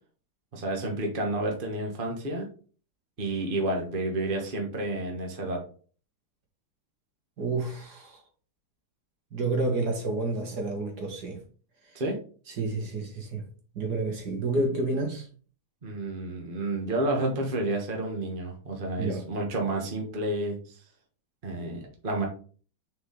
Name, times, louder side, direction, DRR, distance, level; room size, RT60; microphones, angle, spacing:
voice 1, 0.5-2.5 3.2-5.6 11.9-12.2 15.8-20.8 21.4-22.3, right 2 dB, 30° right, 1.3 m, -30 dB
voice 2, 7.4-8.2 9.3-11.4 11.9-12.0 12.6-13.5 13.7-15.3 19.0-19.2, right 2 dB, 50° right, 2.1 m, -29 dB
6.6 x 4.7 x 3.8 m
omnidirectional pair, 2.3 m